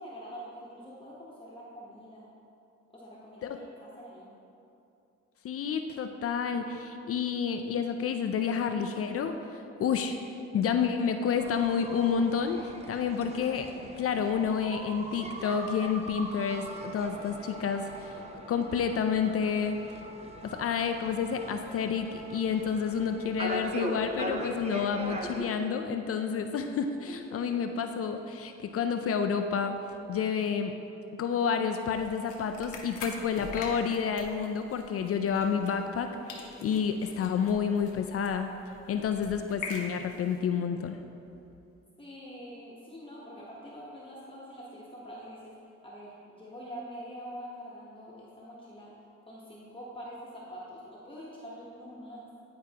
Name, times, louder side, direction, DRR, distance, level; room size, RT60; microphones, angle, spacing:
voice 1, 0.0-2.3 2.9-4.3 27.1-27.6 42.0-45.6 45.8-48.9 49.3-52.3, equal, 15° left, -6 dB, 1.1 m, -45 dB
voice 2, 5.4-9.4 9.8-10.2 10.5-13.7 14.0-18.2 18.5-19.8 20.4-29.7 30.1-30.7 31.2-38.5 38.9-41.0, left 6 dB, 50° left, 6 dB, 0.4 m, -29 dB
sound 1, 11.4-25.4, right 1 dB, 20° right, 0.6 m, -40 dB
sound 2, 31.9-36.0 36.3-40.4, left 4 dB, 85° left, 0.9 m, -44 dB
10.0 x 4.7 x 2.9 m, 2.7 s
cardioid pair, 90°, 30 cm